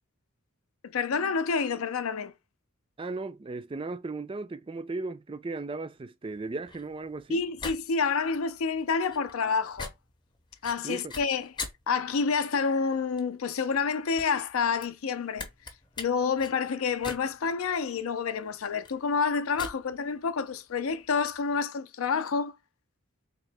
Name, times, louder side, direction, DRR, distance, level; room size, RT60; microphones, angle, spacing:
voice 1, 0.8-2.3 7.3-9.9 10.6-11.5 11.9-15.5 16.0-22.6, left 5 dB, 75° left, 0.5 m, -28 dB
voice 2, 3.0-7.4 10.8-11.1, right 3 dB, 25° right, 0.3 m, -36 dB
sound 1, 6.3-21.6, left 4 dB, 20° left, 0.6 m, -44 dB
3.6 x 2.9 x 3.3 m
head